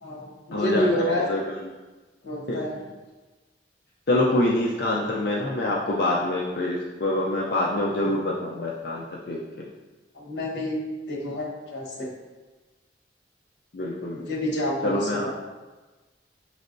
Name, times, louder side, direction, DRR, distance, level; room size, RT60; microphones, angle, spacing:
voice 1, 0.0-1.3 2.2-2.8 10.1-10.8 11.1-12.1 14.3-15.3, left 1 dB, 85° left, -2 dB, 1.0 m, -28 dB
voice 2, 0.5-1.7 2.5-2.6 4.1-9.4 13.7-14.3 14.8-15.3, left 1 dB, 60° left, -4 dB, 0.5 m, -26 dB
6.1 x 3.2 x 2.6 m, 1.2 s
head